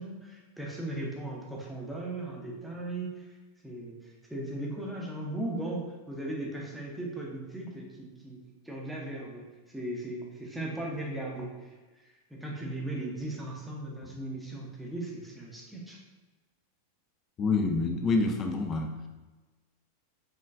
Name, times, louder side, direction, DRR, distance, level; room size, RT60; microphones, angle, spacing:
voice 1, 0.0-3.4 3.6-8.4 8.6-9.4 9.7-16.0, right 1 dB, 5° right, -3 dB, 0.8 m, -37 dB
voice 2, 17.4-18.9, left 3 dB, 25° left, 4 dB, 0.5 m, -27 dB
4.5 x 3.0 x 2.5 m, 1.2 s
figure-of-eight pair, 90°, 0 cm